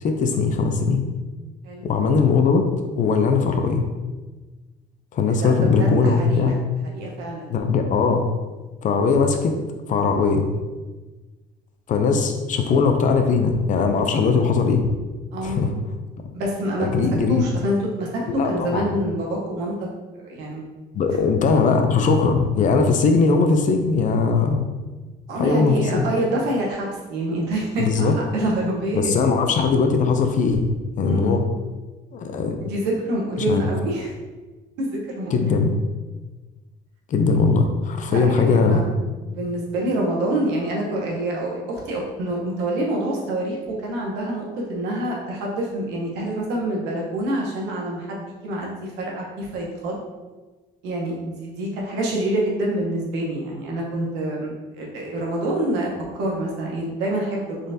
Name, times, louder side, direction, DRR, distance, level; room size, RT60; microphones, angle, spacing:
voice 1, 0.0-1.0 1.8-2.7 3.0-3.9 5.1-6.5 7.5-8.2 8.8-9.6 9.9-10.5 11.9-14.9 15.4-15.7 16.8-17.4 18.3-18.9 20.9-24.7 25.4-26.0 27.8-28.1 28.9-30.7 31.0-31.4 32.1-32.6 33.4-33.6 35.3-35.7 37.1-38.8, left 4 dB, 50° left, 5 dB, 0.5 m, -20 dB
voice 2, 5.8-6.6 6.9-7.6 15.3-15.6 16.3-19.7 20.1-20.7 25.3-29.1 31.0-31.4 32.6-34.1 34.8-35.6 38.1-38.8 39.3-50.0 50.8-57.7, right 1 dB, 90° right, -1 dB, 0.9 m, -26 dB
3.8 x 3.2 x 2.6 m, 1.2 s
cardioid pair, 110°, 17 cm